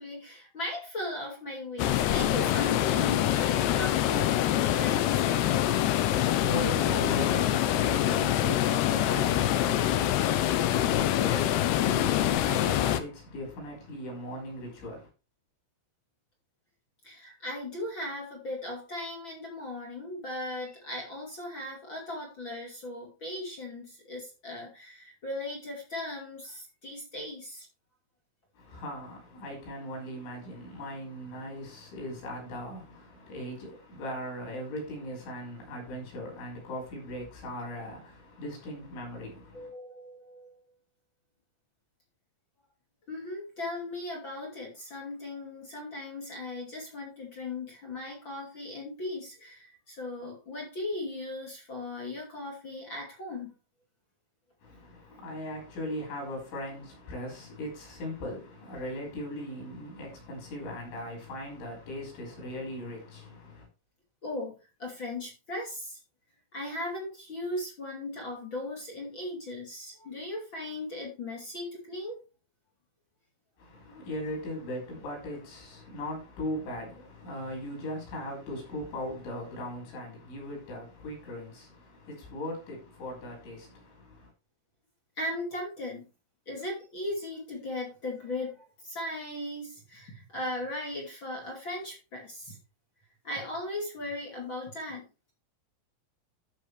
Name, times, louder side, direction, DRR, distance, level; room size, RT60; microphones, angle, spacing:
voice 1, 0.0-5.6 17.0-27.7 39.5-40.6 43.1-53.5 64.2-66.0 66.5-72.2 85.2-86.1 86.5-92.6 93.2-95.0, left 1 dB, 35° left, 2.3 m, -38 dB
sound 1, 1.8-13.0, left 12 dB, 85° left, 2.4 m, -25 dB
voice 2, 6.0-15.1 28.6-39.7 54.6-63.7 73.6-84.3, left 1 dB, 65° left, 7.7 m, -39 dB
14.0 x 6.5 x 3.4 m
omnidirectional pair, 5.9 m